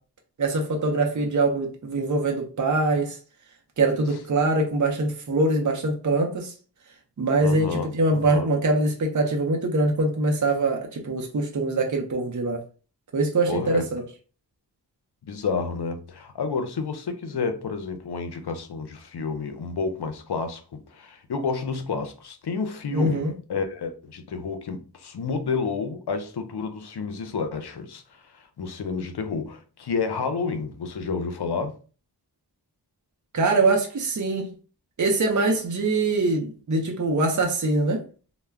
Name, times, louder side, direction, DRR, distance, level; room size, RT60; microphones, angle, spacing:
voice 1, 0.4-3.2 3.8-6.5 7.2-12.6 13.1-14.0 22.9-23.3 33.3-34.5 35.0-38.0, right 2 dB, 45° right, 0.6 m, -23 dB
voice 2, 7.4-8.5 13.5-13.8 15.3-31.7, left 4 dB, 65° left, 0.6 m, -30 dB
2.2 x 2.1 x 3.3 m
wide cardioid pair, 45°, 42 cm